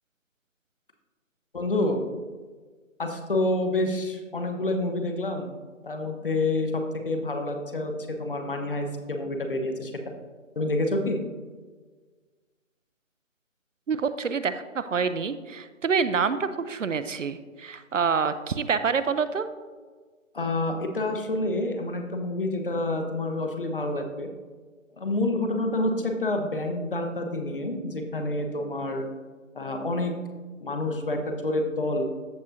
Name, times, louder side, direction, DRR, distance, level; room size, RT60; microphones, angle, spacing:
voice 1, 1.5-2.0 3.0-5.6 5.8-9.9 10.6-11.2 20.3-24.3 25.0-29.1 29.5-30.1 30.6-32.1, left 2 dB, 40° left, 5 dB, 0.9 m, -28 dB
voice 2, 13.9-19.5, right 5 dB, 65° right, 12 dB, 0.6 m, -27 dB
14.0 x 5.3 x 2.6 m, 1.4 s
figure-of-eight pair, 165°, 40 cm